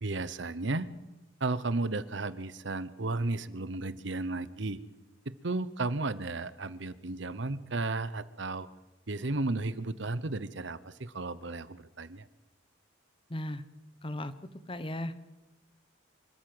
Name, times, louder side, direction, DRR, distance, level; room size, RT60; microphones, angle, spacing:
voice 1, 0.0-0.9 1.4-4.8 5.3-8.7 9.1-12.3, right 2 dB, 65° right, 16 dB, 0.9 m, -34 dB
voice 2, 13.3-13.6 14.0-14.3 14.7-15.2, left 1 dB, 25° left, 13 dB, 1.0 m, -36 dB
25.5 x 13.5 x 7.9 m, 1.0 s
head